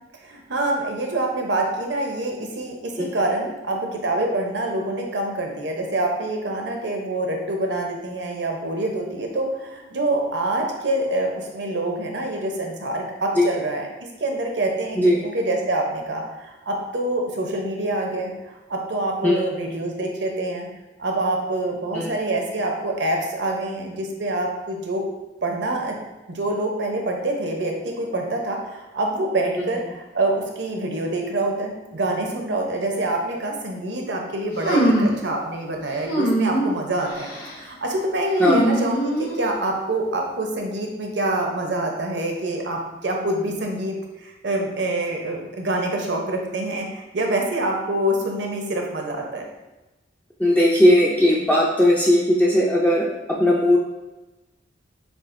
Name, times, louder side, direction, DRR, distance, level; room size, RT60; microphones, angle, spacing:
voice 1, 0.2-13.9 14.2-18.3 18.7-20.7 21.0-25.1 25.4-26.0 26.3-49.5, right 2 dB, 75° right, 1 dB, 0.7 m, -26 dB
sound 1, 34.6-35.2 36.0-36.7 37.1-37.5 38.3-39.5, right 1 dB, 60° left, 1.1 m, -22 dB
voice 2, 50.4-53.0 53.4-53.8, left 1 dB, 10° left, -4 dB, 0.4 m, -17 dB
7.0 x 2.4 x 2.5 m, 1.1 s
head